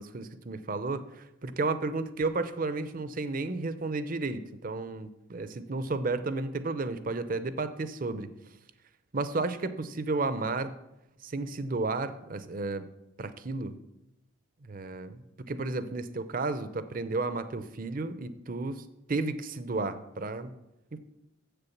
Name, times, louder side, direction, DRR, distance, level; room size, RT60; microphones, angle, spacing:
voice 1, 0.0-8.3 9.1-10.7 11.2-12.8 13.2-13.7 14.6-15.2 15.5-20.5 20.9-21.0, right 3 dB, 45° right, 12 dB, 0.6 m, -32 dB
7.6 x 6.9 x 7.2 m, 0.91 s
head